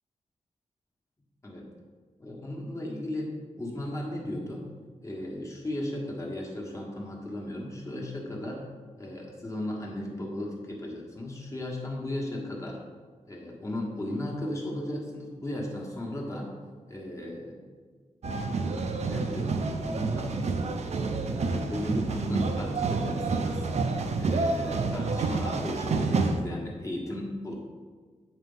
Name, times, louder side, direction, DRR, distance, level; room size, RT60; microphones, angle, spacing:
voice 1, 2.2-4.7 5.0-8.7 9.0-12.8 13.2-16.5 16.9-17.6 18.8-20.3 21.2-23.7 24.2-27.6, left 1 dB, 25° left, -2 dB, 1.3 m, -36 dB
sound 1, 18.2-26.4, right 3 dB, 55° right, 0.6 m, -29 dB
8.1 x 4.4 x 5.5 m, 1.5 s
wide cardioid pair, 175°, 13 cm